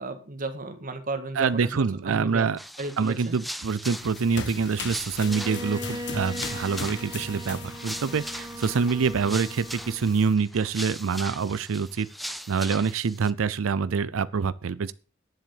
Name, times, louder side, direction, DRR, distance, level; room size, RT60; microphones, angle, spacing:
voice 1, 0.0-2.5 2.8-3.4, right 2 dB, 45° right, 1.8 m, -34 dB
voice 2, 1.4-2.6 3.0-14.9, right 5 dB, 85° right, 0.5 m, -26 dB
sound 1, 2.6-13.3, equal, ahead, 0.5 m, -40 dB
sound 2, 3.9-10.3, left 4 dB, 60° left, 1.5 m, -39 dB
Bowed string instrument, 5.2-10.2, equal, 15° right, 1.1 m, -39 dB
10.5 x 7.6 x 7.1 m
head